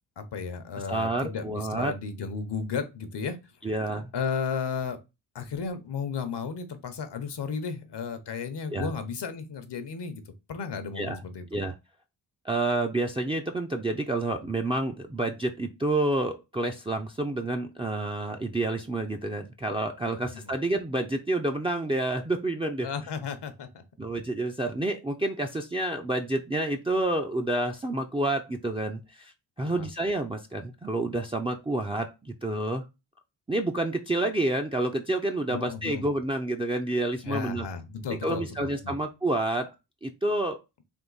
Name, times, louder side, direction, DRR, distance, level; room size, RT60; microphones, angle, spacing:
voice 1, 0.2-3.4 4.1-5.0 5.3-10.2 10.5-11.4 20.0-20.5 22.8-23.7 29.6-29.9 35.5-36.0 37.2-39.0, left 5 dB, 65° left, 0.9 m, -34 dB
voice 2, 0.9-1.9 3.6-4.1 8.7-8.9 11.0-11.2 11.5-11.7 12.4-22.9 24.0-29.3 29.6-32.9 33.5-37.7 38.2-39.7 40.0-40.6, right 2 dB, 10° right, 0.5 m, -29 dB
3.7 x 2.6 x 3.9 m
cardioid pair, 60°, 45 cm